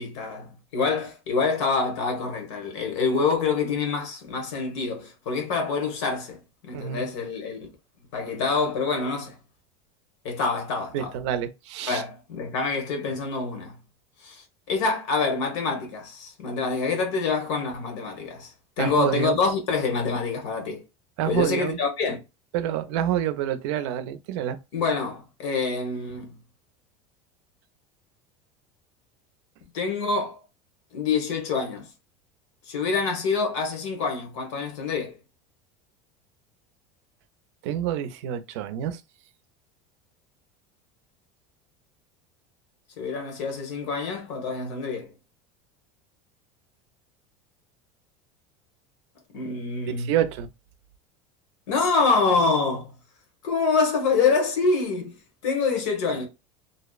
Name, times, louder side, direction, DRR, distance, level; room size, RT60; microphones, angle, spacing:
voice 1, 0.0-7.7 8.1-9.4 10.2-11.1 11.9-13.8 14.2-20.8 21.3-22.2 24.7-26.3 29.7-30.4 30.9-31.9 32.7-35.1 43.0-45.1 49.3-50.1 51.7-52.9 53.4-56.3, left 4 dB, 80° left, 1.0 m, -26 dB
voice 2, 6.7-7.1 10.9-12.0 18.8-19.4 21.2-21.8 22.5-24.6 37.6-39.0 49.9-50.5, right 10 dB, 75° right, 0.5 m, -27 dB
2.7 x 2.0 x 2.3 m
supercardioid pair, 155°, 15 cm